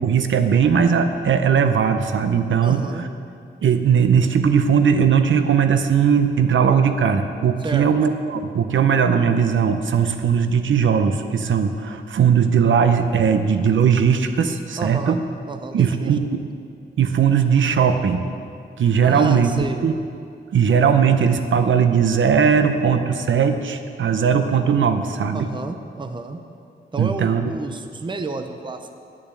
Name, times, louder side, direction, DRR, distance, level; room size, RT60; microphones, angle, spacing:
voice 1, 0.0-2.8 3.6-15.2 15.7-16.4 17.0-18.3 18.8-19.9 20.5-25.5 27.0-27.5, right 7 dB, 85° right, 8 dB, 0.7 m, -18 dB
voice 2, 2.6-3.0 7.6-7.9 14.8-15.2 15.5-16.2 19.0-19.8 25.3-26.4 26.9-28.9, right 3 dB, 25° right, 7 dB, 0.6 m, -30 dB
10.5 x 7.2 x 8.3 m, 2.4 s
wide cardioid pair, 100°, 19 cm